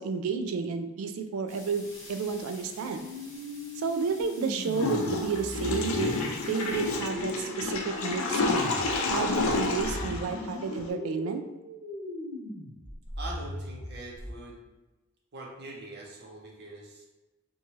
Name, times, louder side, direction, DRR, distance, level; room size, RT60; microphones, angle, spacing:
voice 1, 0.0-3.1 3.8-6.1 6.4-8.6 9.1-11.4, right 5 dB, 85° right, 7 dB, 0.3 m, -31 dB
sound 1, 1.5-7.0, left 1 dB, 60° left, 1.0 m, -50 dB
sound 2, 2.9-9.0 9.3-14.3, left 1 dB, 10° right, 0.8 m, -39 dB
Water / Toilet flush, 4.7-10.9, left 3 dB, 80° left, 0.4 m, -30 dB
voice 2, 13.2-14.6 15.3-17.1, right 2 dB, 50° right, -2 dB, 0.6 m, -43 dB
2.7 x 2.3 x 3.0 m, 1.1 s
head